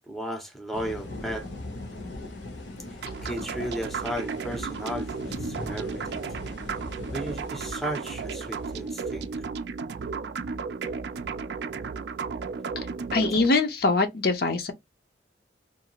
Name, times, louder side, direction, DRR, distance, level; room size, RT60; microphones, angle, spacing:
voice 1, 0.0-1.5 3.2-6.3 7.1-9.3, equal, ahead, 0.5 m, -35 dB
sound 1, 0.7-9.6, left 2 dB, 70° left, 0.9 m, -40 dB
sound 2, 3.0-13.5, right 5 dB, 60° right, 0.3 m, -34 dB
voice 2, 13.1-14.7, left 3 dB, 55° left, 0.5 m, -23 dB
2.5 x 2.3 x 2.8 m
head